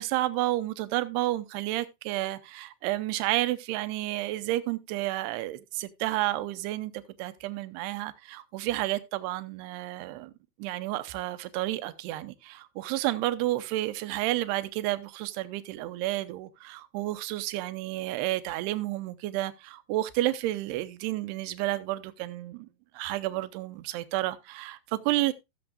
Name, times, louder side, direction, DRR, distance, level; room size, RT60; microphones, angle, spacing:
voice 1, 0.0-10.3 10.6-22.7 22.9-25.3, right 16 dB, 80° right, 2.6 m, -31 dB
18.0 x 7.0 x 2.4 m
omnidirectional pair, 5.0 m